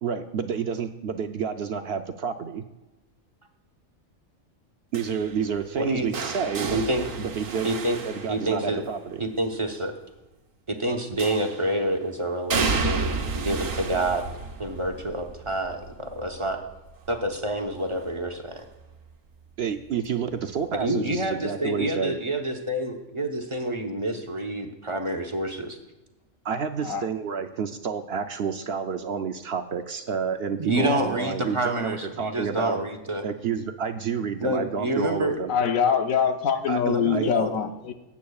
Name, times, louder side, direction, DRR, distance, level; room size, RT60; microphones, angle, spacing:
voice 1, 0.0-2.6 4.9-6.8 7.2-7.7 8.0-9.2 19.6-22.2 26.4-32.8 33.2-35.5 36.7-37.3, right 6 dB, 60° right, 7 dB, 0.7 m, -29 dB
sound 1, 4.9-9.0 11.2-11.8 12.5-18.3 18.7-19.1 20.3-20.4, right 4 dB, 80° right, 1.4 m, -32 dB
voice 2, 5.7-6.1 6.7-7.1 7.6-8.0 8.3-8.8 9.2-9.9 10.7-14.2 14.6-16.6 17.1-18.6 20.8-25.8 30.6-33.2 34.4-35.4 36.9-37.5, right 1 dB, 25° right, 3 dB, 0.9 m, -28 dB
voice 3, 35.5-37.9, left 7 dB, 90° left, 7 dB, 1.2 m, -24 dB
19.0 x 8.4 x 2.3 m, 1.1 s
omnidirectional pair, 1.3 m